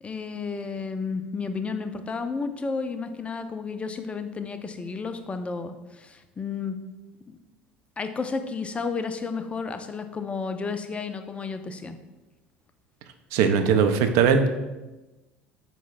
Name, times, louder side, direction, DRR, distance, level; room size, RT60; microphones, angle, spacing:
voice 1, 0.0-6.8 7.3-7.4 8.0-12.0, left 4 dB, 20° left, 8 dB, 0.4 m, -32 dB
voice 2, 13.3-14.5, right 6 dB, 55° right, 7 dB, 0.4 m, -20 dB
4.6 x 2.1 x 3.8 m, 1.1 s
figure-of-eight pair, 65°, 6 cm